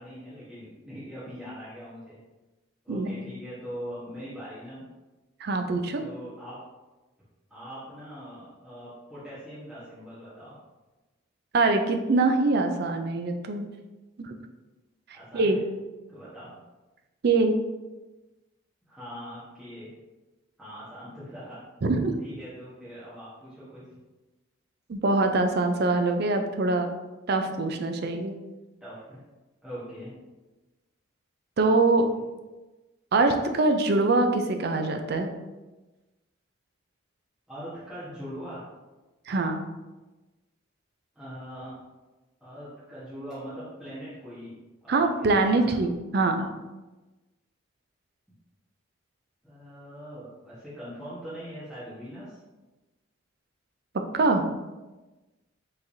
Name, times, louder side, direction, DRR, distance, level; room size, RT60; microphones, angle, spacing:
voice 1, 0.0-2.2 2.8-4.8 6.0-6.6 7.5-10.5 15.1-15.6 16.1-16.5 18.9-19.9 20.6-21.6 22.2-23.8 28.8-29.2 29.6-30.2 37.5-38.7 41.1-41.7 42.4-44.5 44.8-45.8 49.4-52.4, equal, 5° right, -13 dB, 1.1 m, -41 dB
voice 2, 2.9-3.3 5.4-6.0 11.5-13.7 14.2-14.3 15.3-15.6 17.2-17.5 21.8-22.2 24.9-26.9 27.3-28.3 31.6-32.1 33.1-35.4 39.3-39.7 44.9-46.5 54.1-54.5, right 3 dB, 50° right, 6 dB, 0.4 m, -24 dB
5.7 x 3.3 x 2.6 m, 1.1 s
head